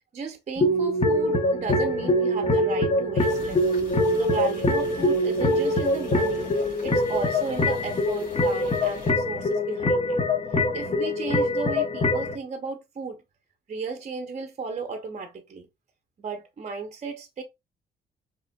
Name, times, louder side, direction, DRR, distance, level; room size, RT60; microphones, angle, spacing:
voice 1, 0.1-3.6 4.1-6.5 6.8-10.2 10.5-13.2 13.7-15.7 16.2-17.4, right 4 dB, 35° right, 0.7 m, -34 dB
sound 1, 0.6-12.3, left 1 dB, 30° left, 0.9 m, -24 dB
sound 2, 3.2-9.1, left 1 dB, 45° left, 2.5 m, -45 dB
4.8 x 3.2 x 2.2 m
cardioid pair, 90°, 20 cm